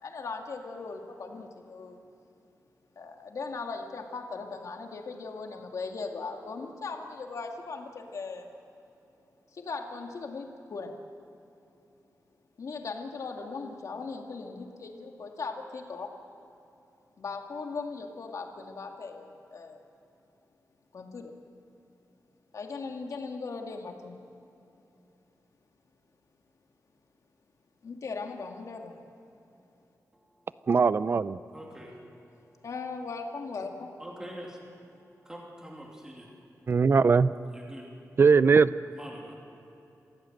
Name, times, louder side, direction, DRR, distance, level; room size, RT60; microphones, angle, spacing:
voice 1, 0.0-2.0 3.0-8.5 9.5-10.9 12.6-16.1 17.2-19.8 20.9-21.3 22.5-24.1 27.8-28.9 32.6-33.9, left 4 dB, 60° left, 2 dB, 2.3 m, -38 dB
voice 2, 30.1-30.7 31.5-32.7 34.0-36.8 37.5-38.0 38.9-39.5, equal, 10° right, -2 dB, 3.0 m, -46 dB
voice 3, 30.7-31.4 36.7-37.3 38.2-38.7, right 5 dB, 40° right, 16 dB, 0.5 m, -20 dB
27.0 x 16.0 x 7.9 m, 2.9 s
wide cardioid pair, 165°, 6 cm